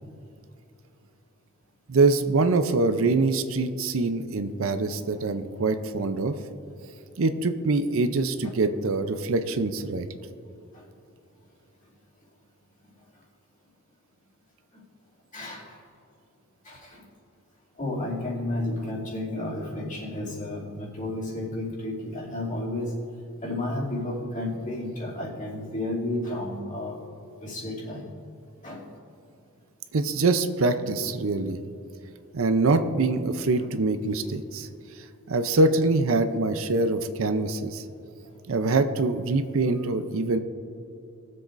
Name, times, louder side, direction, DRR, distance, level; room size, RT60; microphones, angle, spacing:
voice 1, 1.9-6.3 7.2-10.1 29.9-31.6 32.3-34.7 35.3-37.8 38.5-40.4, right 3 dB, 65° right, 9 dB, 0.6 m, -24 dB
voice 2, 15.3-15.8 16.6-17.0 17.8-22.9 23.4-27.0 27.4-28.1 28.6-28.8 33.6-33.7 38.3-38.4, left 1 dB, 35° left, -5 dB, 2.6 m, -32 dB
21.0 x 7.7 x 2.6 m, 2.7 s
head